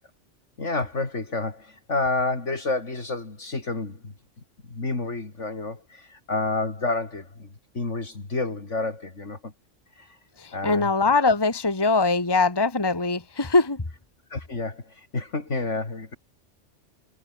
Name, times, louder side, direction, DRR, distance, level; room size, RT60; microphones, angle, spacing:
voice 1, 0.6-4.1 4.7-7.5 7.7-9.5 10.0-10.2 10.5-10.9 14.3-16.2, left 3 dB, 75° left, 3.7 m, -29 dB
voice 2, 10.4-13.8, left 3 dB, 20° left, 1.6 m, -22 dB
omnidirectional pair, 1.3 m